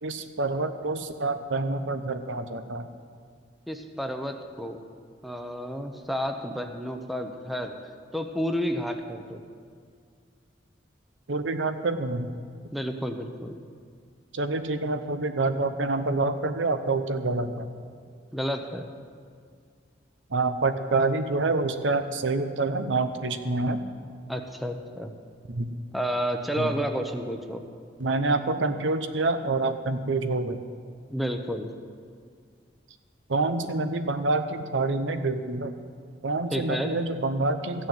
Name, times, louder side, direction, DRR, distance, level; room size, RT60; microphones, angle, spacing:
voice 1, 0.0-2.9 11.3-12.4 12.6-12.7 14.3-17.7 20.3-23.8 25.5-25.8 26.6-26.8 28.0-30.6 33.3-35.7 36.2-37.9, right 3 dB, 80° right, 9 dB, 0.8 m, -27 dB
voice 2, 3.7-4.8 5.2-7.8 8.1-9.4 12.7-13.6 18.3-18.9 24.3-25.1 25.9-27.6 31.1-31.7 36.5-36.9, equal, ahead, 5 dB, 0.8 m, -31 dB
14.5 x 6.6 x 9.0 m, 2.1 s
head